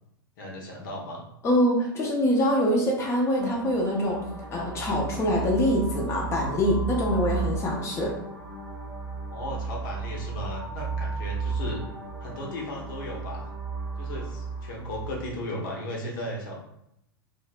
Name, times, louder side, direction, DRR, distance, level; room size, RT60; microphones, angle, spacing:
voice 1, 0.4-1.2 9.3-11.8 12.2-13.5 14.0-16.6, left 1 dB, 60° left, -1 dB, 0.6 m, -36 dB
voice 2, 1.4-4.2 4.5-8.1, equal, 20° left, -1 dB, 0.5 m, -24 dB
sound 1, 3.4-15.3, right 4 dB, 25° right, 0.7 m, -34 dB
2.6 x 2.0 x 2.4 m, 0.80 s
figure-of-eight pair, 90°, 12 cm